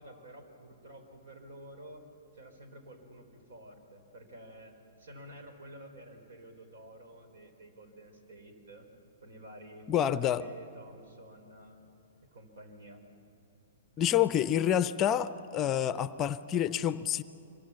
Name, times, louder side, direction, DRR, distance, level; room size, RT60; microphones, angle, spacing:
voice 1, 0.0-2.0 2.3-4.7 5.0-8.9 9.2-11.8 12.3-13.0, right 1 dB, 65° right, 6 dB, 4.2 m, -50 dB
voice 2, 9.9-10.4 14.0-17.2, left 10 dB, 30° left, 15 dB, 0.6 m, -28 dB
25.5 x 23.0 x 7.1 m, 2.7 s
figure-of-eight pair, 115°, 0 cm